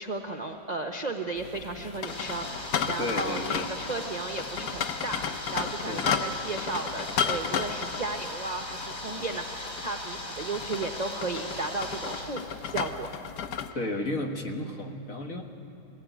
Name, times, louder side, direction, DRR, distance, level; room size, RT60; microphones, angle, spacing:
voice 1, 0.0-5.2 5.5-13.1, right 3 dB, 35° right, 4 dB, 0.7 m, -34 dB
sound 1, 1.4-13.7, left 7 dB, 80° left, 1.4 m, -34 dB
sound 2, 2.1-12.7, left 1 dB, 30° left, 3.0 m, -39 dB
voice 2, 3.0-3.7 5.9-6.1 13.7-15.4, left 1 dB, 55° left, 4 dB, 1.9 m, -33 dB
20.0 x 16.5 x 9.3 m, 2.6 s
omnidirectional pair, 1.7 m